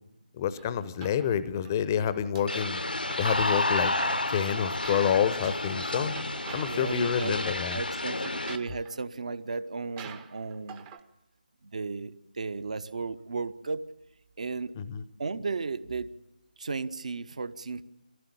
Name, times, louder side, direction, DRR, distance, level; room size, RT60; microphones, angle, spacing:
voice 1, 0.3-2.8 3.2-3.9 4.3-6.2 6.5-7.8 14.7-15.0, left 8 dB, 20° left, 15 dB, 0.8 m, -28 dB
sound 1, 0.6-1.7 2.1-3.6 3.9-6.9 7.1-7.6 7.9-9.0 9.5-9.6 10.0-11.0, right 7 dB, 15° right, 0.8 m, -47 dB
sound 2, 2.5-8.6, left 2 dB, 75° left, 1.0 m, -30 dB
voice 2, 6.7-7.4 7.7-10.9 11.6-13.8 14.4-14.7 15.2-16.1 16.6-17.8, right 4 dB, 50° right, 13 dB, 1.0 m, -34 dB
24.0 x 15.5 x 8.6 m, 0.90 s
figure-of-eight pair, 155°, 5 cm